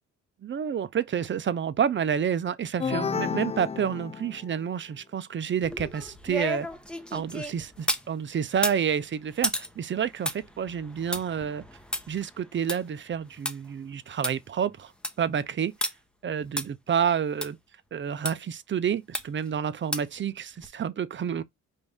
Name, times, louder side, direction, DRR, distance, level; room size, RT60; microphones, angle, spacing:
voice 1, 0.4-6.7 7.1-11.6 12.1-14.9 15.2-15.7 16.2-17.6 17.9-21.4, right 8 dB, 40° right, 0.6 m, -29 dB
sound 1, 2.8-4.6, left 6 dB, 20° left, 0.3 m, -31 dB
sound 2, 5.6-8.1 8.5-13.5 13.9-14.0 14.2-14.3 14.8-15.2 15.8-15.9 16.6-16.7 17.4-17.5 18.2-18.3 19.1-19.5 19.9-20.2 20.6-20.7, equal, 5° left, 0.9 m, -33 dB
5.2 x 2.6 x 3.5 m
cardioid pair, 90°, 30 cm